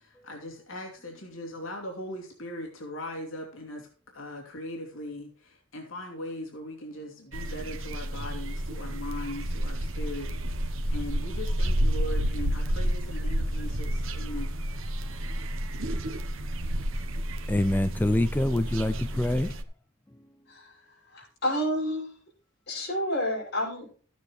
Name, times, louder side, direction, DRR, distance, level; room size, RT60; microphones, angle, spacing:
voice 1, 0.0-3.9 4.1-14.6, left 1 dB, 75° left, 2.9 m, -39 dB
sound 1, 7.3-19.6, equal, 75° right, 1.0 m, -30 dB
voice 2, 17.5-19.6 20.1-20.3, left 1 dB, 10° left, 0.4 m, -26 dB
voice 3, 20.5-22.1 22.7-23.9, equal, 55° left, 6.5 m, -30 dB
13.5 x 9.2 x 3.2 m
head